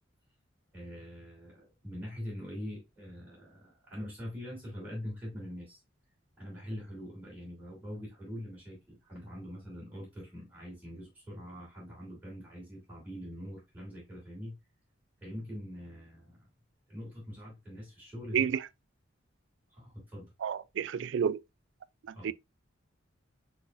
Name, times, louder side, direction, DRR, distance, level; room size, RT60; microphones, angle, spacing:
voice 1, 0.7-5.8 6.4-14.6 15.2-16.4 16.9-18.5 19.7-20.3 22.1-22.3, equal, 10° right, 2.8 m, -43 dB
voice 2, 18.3-18.7 20.4-21.4 22.0-22.3, right 7 dB, 65° right, 0.3 m, -30 dB
6.2 x 3.4 x 2.5 m
head